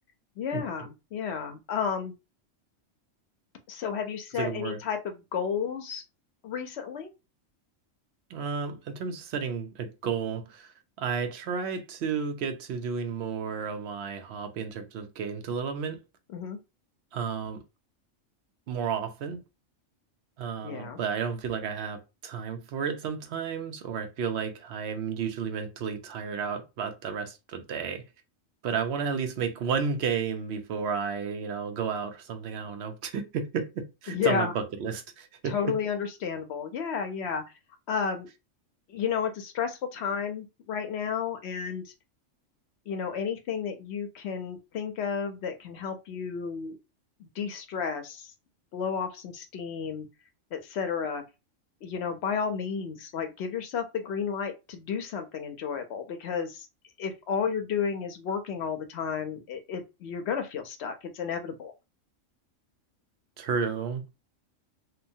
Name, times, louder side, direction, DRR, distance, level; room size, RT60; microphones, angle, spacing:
voice 1, 0.4-2.1 3.7-6.0 6.4-7.1 16.3-16.6 20.6-21.0 34.1-34.5 35.4-37.4 37.9-38.3 38.9-41.9 42.9-46.8 47.2-48.3 48.7-50.1 50.5-51.2 51.8-56.7 57.0-61.7, left 6 dB, 65° left, 0.8 m, -32 dB
voice 2, 4.4-4.8 8.3-16.0 17.1-17.6 18.7-19.4 20.4-28.1 28.6-35.8 63.4-64.0, right 6 dB, 65° right, 0.8 m, -32 dB
2.9 x 2.2 x 2.6 m
omnidirectional pair, 1.3 m